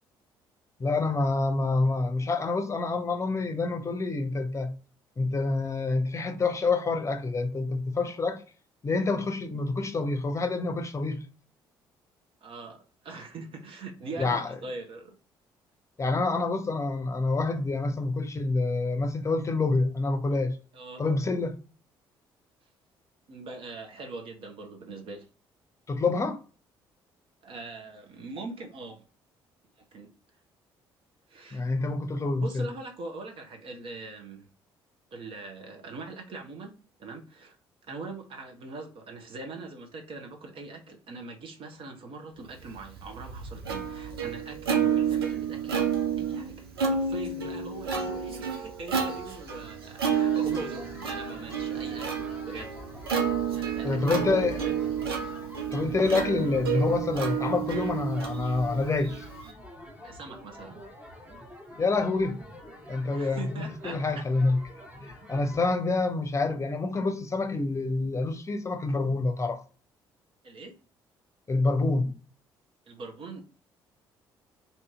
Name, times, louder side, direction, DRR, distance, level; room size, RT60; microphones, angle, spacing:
voice 1, 0.8-4.7 5.2-8.4 8.8-11.2 14.2-14.5 16.0-20.6 21.0-21.6 25.9-26.4 31.5-32.6 53.8-54.6 55.7-59.1 61.8-62.4 62.9-64.6 64.9-69.6 71.5-72.1, left 3 dB, 25° left, 0.7 m, -27 dB
voice 2, 12.4-15.2 20.7-21.0 23.3-25.3 27.4-29.1 29.9-30.1 31.3-31.6 32.4-34.5 35.1-37.6 37.8-52.8 53.5-54.7 60.0-60.8 63.1-64.2 70.4-70.8 72.8-73.4, right 3 dB, 45° right, 1.0 m, -42 dB
Plucked string instrument, 42.8-59.5, right 7 dB, 80° right, 0.6 m, -30 dB
sound 1, 50.0-65.8, left 1 dB, 10° right, 1.0 m, -47 dB
2.8 x 2.8 x 3.5 m
figure-of-eight pair, 45°, 12 cm